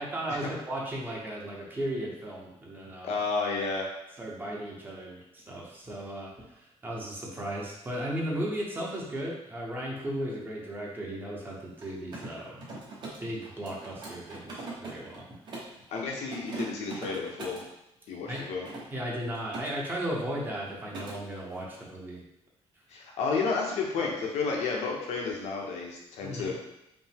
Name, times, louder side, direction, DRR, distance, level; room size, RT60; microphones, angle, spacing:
voice 1, 0.0-3.1 4.2-6.3 6.6-12.6 13.2-15.2 15.5-15.7 18.3-18.5 18.9-22.2 26.2-26.6, right 1 dB, 20° right, -3 dB, 0.8 m, -36 dB
voice 2, 3.0-3.9 15.9-17.6 18.1-18.6 22.9-26.6, left 4 dB, 85° left, -1 dB, 0.9 m, -31 dB
Mechanisms, 11.7-15.8 16.2-17.7 18.3-19.7 20.0-20.3 20.6-21.2, right 2 dB, 45° right, 1.1 m, -42 dB
5.1 x 2.2 x 3.5 m, 0.87 s
cardioid pair, 160°, 11 cm